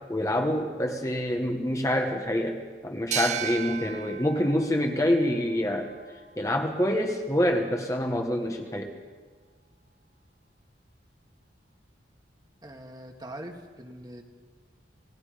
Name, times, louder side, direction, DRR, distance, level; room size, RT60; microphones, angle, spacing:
voice 1, 0.1-5.9 6.4-8.9, left 1 dB, 15° left, 3 dB, 1.4 m, -26 dB
sound 1, 3.1-6.5, right 10 dB, 35° right, 0.7 m, -36 dB
voice 2, 12.6-14.2, right 1 dB, 20° right, 3 dB, 1.7 m, -42 dB
28.5 x 18.0 x 5.2 m, 1.5 s
head